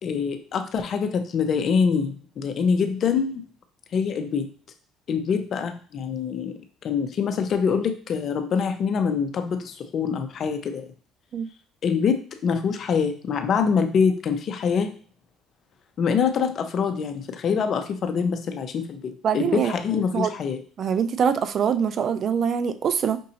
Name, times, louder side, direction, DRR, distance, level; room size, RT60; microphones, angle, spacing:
voice 1, 0.0-3.4 3.9-4.5 5.1-6.5 6.8-10.9 11.8-14.9 16.0-20.6, left 6 dB, 55° left, 6 dB, 0.6 m, -25 dB
voice 2, 19.2-19.7 20.1-20.3 20.8-23.2, right 7 dB, 50° right, 11 dB, 0.4 m, -23 dB
5.2 x 2.7 x 2.7 m, 0.41 s
supercardioid pair, 80°, 0 cm